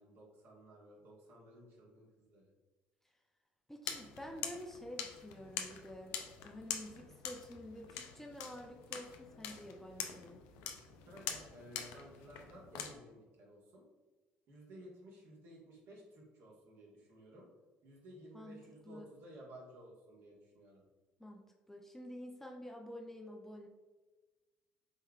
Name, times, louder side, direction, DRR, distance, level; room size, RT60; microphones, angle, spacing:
voice 1, 0.0-2.5 11.1-13.8 14.5-17.5 17.8-20.8, right 1 dB, 60° right, -3 dB, 1.5 m, -55 dB
voice 2, 3.7-6.2 6.4-10.4 18.3-19.1 21.2-23.7, left 1 dB, 5° left, 1 dB, 0.6 m, -49 dB
sound 1, 3.8-12.9, left 8 dB, 75° left, 0.5 m, -45 dB
4.4 x 3.4 x 2.4 m, 1.2 s
hypercardioid pair, 60°, 5 cm